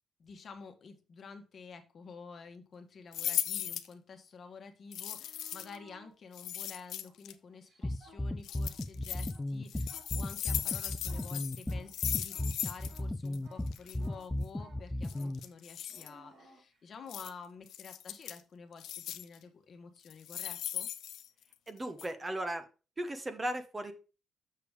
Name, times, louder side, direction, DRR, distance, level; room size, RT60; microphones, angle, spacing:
voice 1, 0.2-20.9, left 5 dB, 50° left, 6 dB, 1.3 m, -50 dB
sound 1, 3.1-3.9 4.9-5.8 6.3-7.3 8.4-9.3 9.7-13.0 13.3-13.4 13.7-14.0 15.0-16.1 17.1-17.3 17.7-18.4 18.8-19.4 20.0-21.7 22.0-22.1, left 11 dB, 80° left, 0.6 m, -38 dB
sound 2, 4.9-6.1 6.7-8.8 9.1-17.3 20.1-20.2, right 1 dB, 50° right, 2.7 m, -60 dB
sound 3, 7.8-15.4, left 1 dB, 15° left, 0.7 m, -35 dB
voice 2, 21.7-22.6 23.0-23.9, right 1 dB, 20° right, 8 dB, 1.0 m, -36 dB
6.8 x 6.7 x 3.5 m, 0.33 s
cardioid pair, 90°, 0 cm